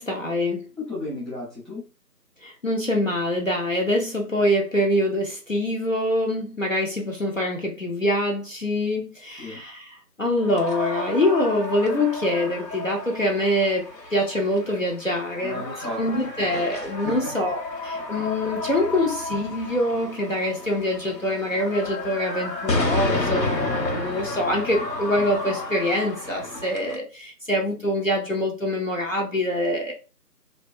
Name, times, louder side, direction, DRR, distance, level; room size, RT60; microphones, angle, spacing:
voice 1, 0.0-0.6 2.4-15.6 16.0-29.9, left 1 dB, 55° left, 0.5 m, -25 dB
voice 2, 0.8-1.8 9.4-9.6 15.4-16.0 17.0-17.3, left 1 dB, ahead, 0.6 m, -33 dB
sound 1, 10.4-27.0, left 2 dB, 75° left, 1.0 m, -31 dB
2.2 x 2.2 x 2.4 m
figure-of-eight pair, 165°, 49 cm